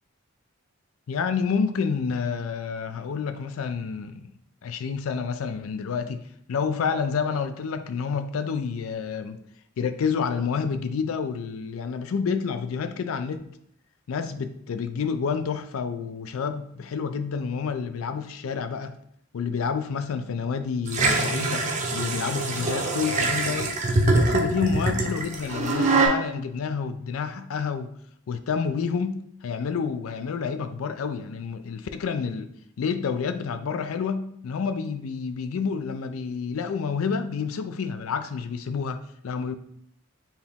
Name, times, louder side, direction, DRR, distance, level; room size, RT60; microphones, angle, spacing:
voice 1, 1.1-4.3 4.6-6.2 6.5-9.4 9.8-13.4 14.1-19.0 19.3-23.7 24.1-27.9 28.3-32.5 32.8-39.5, left 5 dB, 85° left, 0.4 m, -29 dB
sound 1, 20.9-26.1, right 2 dB, 35° right, 0.6 m, -24 dB
4.4 x 2.9 x 3.5 m
head